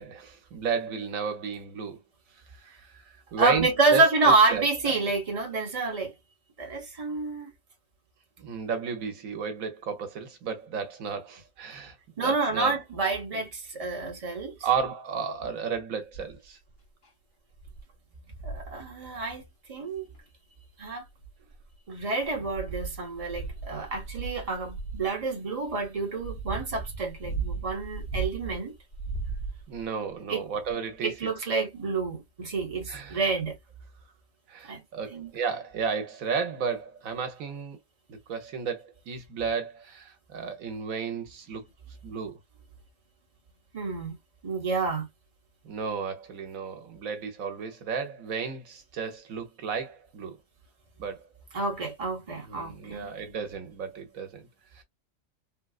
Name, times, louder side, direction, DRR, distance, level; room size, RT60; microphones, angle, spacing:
voice 1, 0.0-2.0 2.6-4.9 8.4-12.0 12.2-12.8 13.3-13.4 14.6-16.6 29.7-31.3 32.9-33.3 34.5-37.8 38.1-41.6 42.0-42.3 45.6-50.4 51.0-51.2 52.5-54.5 54.7-54.8, right 6 dB, 85° right, 1.3 m, -33 dB
voice 2, 3.4-6.1 6.6-7.5 12.2-14.5 18.4-19.4 19.7-20.1 20.8-21.0 21.9-28.7 30.3-30.4 31.0-33.6 34.6-34.8 35.1-35.3 43.7-44.2 44.4-45.1 51.5-53.1, right 3 dB, 30° right, 1.2 m, -28 dB
sound 1, 16.1-16.4 17.0-17.1 17.6-17.8 18.3-18.8 20.2-20.3 21.0-21.7 22.2-25.1 25.8-28.6 28.9-29.9 30.7-30.8, right 4 dB, 65° left, 1.5 m, -36 dB
3.9 x 2.3 x 2.3 m
omnidirectional pair, 1.4 m